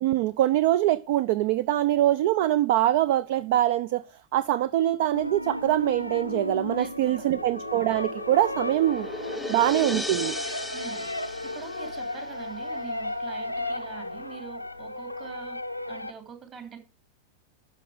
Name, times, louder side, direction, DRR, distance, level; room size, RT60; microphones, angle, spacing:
voice 1, 0.0-4.0 4.3-9.1 9.5-10.4, right 13 dB, 50° right, 0.4 m, -23 dB
sound 1, 5.1-16.1, left 1 dB, 90° left, 0.5 m, -34 dB
voice 2, 6.7-7.4 9.4-9.7 10.7-11.0 11.4-15.6 15.9-16.8, right 7 dB, 35° right, 3.0 m, -44 dB
sound 2, 7.4-12.6, left 2 dB, ahead, 0.6 m, -37 dB
11.5 x 6.1 x 4.9 m
figure-of-eight pair, 90°, 0 cm